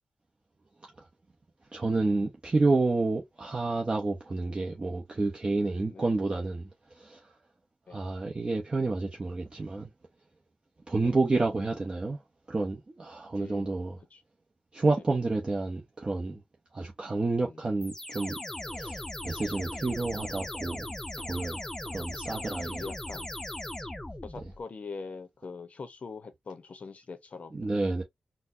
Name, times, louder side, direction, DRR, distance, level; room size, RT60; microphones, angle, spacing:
voice 1, 1.7-7.2 7.9-9.9 10.9-12.2 12.5-14.0 14.7-16.4 16.7-18.4 18.7-20.9 21.2-21.6 21.9-22.8 27.5-28.0, right 3 dB, 35° right, 0.8 m, -29 dB
voice 2, 5.9-6.3 7.9-8.2 11.0-11.2 13.3-13.8 14.1-14.2 15.0-15.1 17.4-17.6 19.5-19.7 22.8-23.3 24.2-27.7, left 4 dB, 55° left, 0.6 m, -43 dB
sound 1, 17.8-24.6, left 1 dB, 15° left, 0.6 m, -38 dB
4.1 x 2.1 x 2.5 m
cardioid pair, 75°, 3 cm